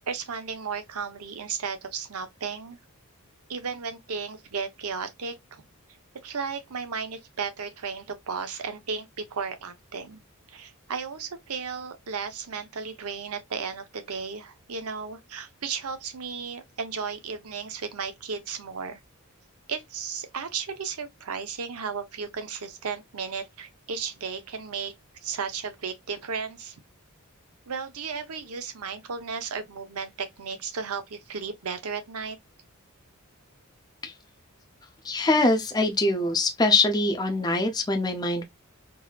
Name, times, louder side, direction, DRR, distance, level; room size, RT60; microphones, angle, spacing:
voice 1, 0.1-2.8 3.5-5.6 6.2-10.2 10.5-19.0 19.7-24.9 25.2-26.8 27.7-32.4, right 5 dB, 85° right, 0.8 m, -34 dB
voice 2, 35.0-38.4, left 2 dB, 20° left, 0.6 m, -23 dB
3.9 x 2.7 x 2.3 m
head